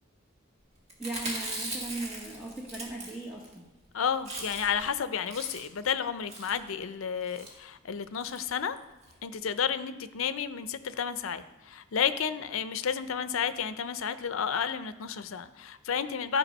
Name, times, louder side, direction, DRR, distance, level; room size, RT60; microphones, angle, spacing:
Chewing mastication, 0.9-3.5 3.8-3.9 4.1-4.8 5.2-5.8 6.3-6.6 7.2-7.5 8.2-8.4 8.8-8.9 9.0-9.1, right 1 dB, 35° right, 1.6 m, -39 dB
voice 1, 1.0-3.7, right 2 dB, 5° right, -5 dB, 1.1 m, -38 dB
voice 2, 3.9-8.8 9.2-16.4, left 7 dB, 85° left, 12 dB, 0.5 m, -31 dB
12.0 x 4.8 x 5.3 m, 1.1 s
head